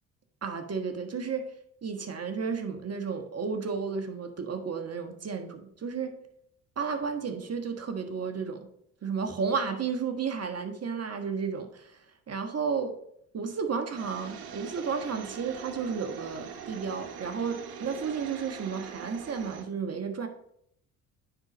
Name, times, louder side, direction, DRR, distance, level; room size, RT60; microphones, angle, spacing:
voice 1, 0.4-1.4 1.8-6.1 6.8-8.7 9.0-13.0 13.3-20.3, right 5 dB, 35° right, 6 dB, 1.4 m, -32 dB
sound 1, 14.0-19.6, right 7 dB, 60° right, 1.1 m, -42 dB
9.6 x 4.0 x 5.0 m, 0.71 s
hypercardioid pair, 60°, 41 cm